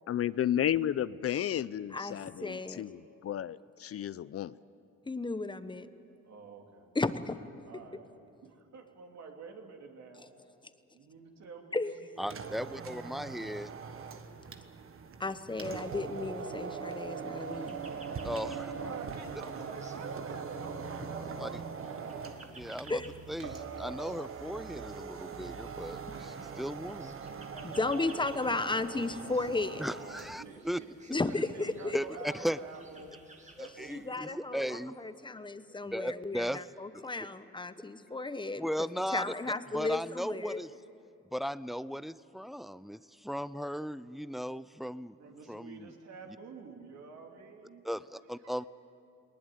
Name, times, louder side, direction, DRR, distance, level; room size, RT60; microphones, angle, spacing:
voice 1, 0.1-4.5, left 11 dB, 50° left, 18 dB, 0.5 m, -32 dB
voice 2, 1.9-2.8 5.1-5.9 6.9-7.4 11.7-11.9 15.2-17.8 22.9-23.1 27.6-29.9 31.1-32.0 33.9-34.6 35.0-38.7 39.1-40.6, left 3 dB, 15° left, 11 dB, 1.0 m, -34 dB
voice 3, 6.2-6.9 7.6-8.1 8.4-10.3 10.9-12.8 17.8-22.0 26.1-26.7 27.2-28.2 30.4-33.1 33.6-34.8 45.2-47.8 48.4-48.7, right 5 dB, 60° right, 2 dB, 3.1 m, -48 dB
voice 4, 12.2-13.7 18.2-18.7 21.4-21.5 22.5-23.0 23.3-26.0 26.6-27.2 29.8-30.8 31.9-32.6 33.6-35.0 35.8-36.6 36.9-37.0 38.5-39.3 39.7-40.7 41.3-45.2 45.5-45.9 47.8-48.7, equal, ahead, 16 dB, 0.5 m, -36 dB
sound 1, 12.2-30.5, right 5 dB, 45° right, 1.4 m, -42 dB
sound 2, 17.4-34.1, right 2 dB, 25° right, 2.2 m, -57 dB
20.0 x 19.5 x 9.3 m, 2.7 s
cardioid pair, 90°, 30 cm